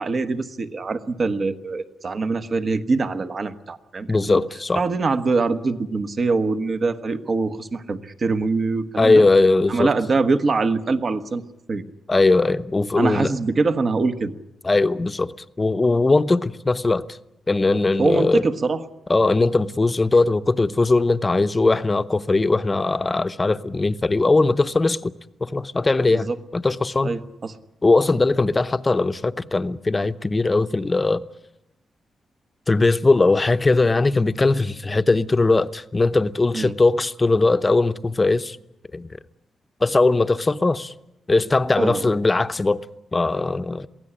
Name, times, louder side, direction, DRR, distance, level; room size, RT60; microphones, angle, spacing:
voice 1, 0.0-4.4 4.7-9.2 9.7-11.4 11.7-11.8 13.0-14.3 18.0-18.8 26.1-26.4 27.0-27.6 36.5-36.7 41.8-42.2, right 3 dB, 45° right, 1.2 m, -23 dB
voice 2, 4.1-4.8 9.0-9.9 12.1-13.3 14.6-15.3 15.6-17.1 17.5-18.5 19.1-25.1 25.4-27.2 27.8-31.2 32.7-38.6 38.9-39.1 39.8-40.9 41.3-42.8 43.1-43.9, left 3 dB, 25° left, 0.8 m, -19 dB
23.0 x 16.0 x 10.0 m
cardioid pair, 100°, 0 cm